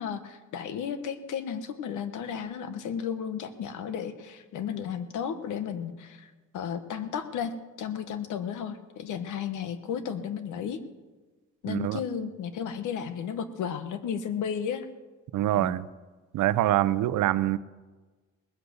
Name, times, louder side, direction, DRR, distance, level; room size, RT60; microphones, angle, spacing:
voice 1, 0.0-10.8 11.6-14.9 15.5-15.7, left 7 dB, 80° left, 11 dB, 1.3 m, -34 dB
voice 2, 11.7-12.0 15.3-15.9 16.3-17.6, right 14 dB, 80° right, 16 dB, 0.6 m, -25 dB
19.0 x 8.0 x 8.0 m, 1.3 s
cardioid pair, 90°, 30 cm